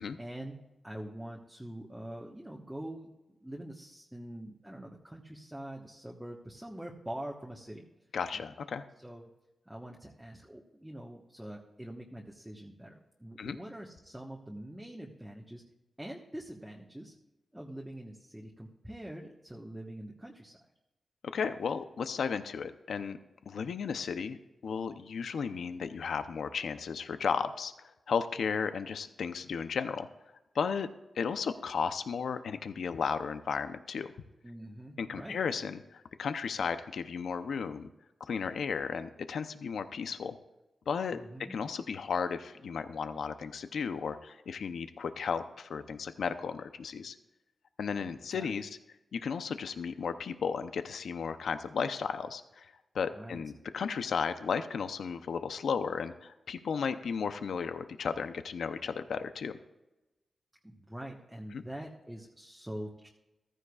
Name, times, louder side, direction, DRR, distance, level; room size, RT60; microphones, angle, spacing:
voice 1, 0.2-0.6 0.8-7.8 8.3-8.4 9.0-9.3 9.7-15.6 16.0-17.2 17.5-20.6 34.4-35.4 41.1-41.5 48.3-48.5 53.1-53.4 60.6-63.1, right 1 dB, 5° right, -2 dB, 1.2 m, -44 dB
voice 2, 8.1-8.8 13.4-13.6 21.2-23.2 23.5-24.4 24.6-30.1 30.5-34.1 35.0-37.9 38.2-40.4 40.9-41.2 41.5-47.2 47.8-48.8 49.1-59.6 61.5-61.6, left 6 dB, 85° left, 10 dB, 0.6 m, -34 dB
14.5 x 13.5 x 2.4 m, 0.99 s
cardioid pair, 75°, 0 cm